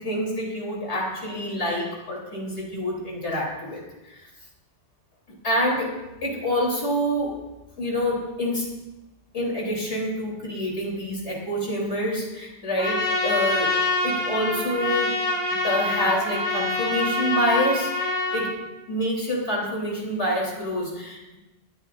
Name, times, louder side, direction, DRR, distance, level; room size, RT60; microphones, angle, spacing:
voice 1, 0.0-4.2 5.3-5.9 6.2-7.4 7.8-8.7 9.3-13.8 14.0-15.2 15.5-18.5 18.9-21.4, equal, 85° left, -3 dB, 3.9 m, -27 dB
Trumpet, 12.8-18.6, left 2 dB, 20° left, 3.5 m, -25 dB
22.0 x 13.5 x 2.6 m, 1.0 s
omnidirectional pair, 1.1 m